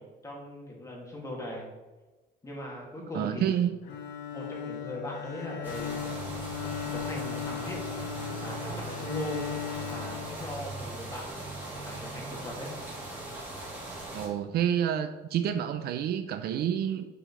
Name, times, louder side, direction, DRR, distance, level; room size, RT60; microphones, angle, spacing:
voice 1, 0.0-1.7 2.4-3.6 4.3-6.0 6.9-7.8 8.4-9.4 9.8-11.3 11.8-12.7, left 1 dB, 15° left, -2 dB, 2.5 m, -39 dB
voice 2, 3.1-3.8 14.1-17.1, right 9 dB, 55° right, 8 dB, 0.6 m, -28 dB
Bowed string instrument, 3.8-11.0, left 9 dB, 80° left, 2.1 m, -37 dB
sound 1, 5.6-14.3, right 2 dB, 10° right, 3.1 m, -39 dB
11.5 x 6.4 x 3.3 m, 1.2 s
cardioid pair, 155°, 19 cm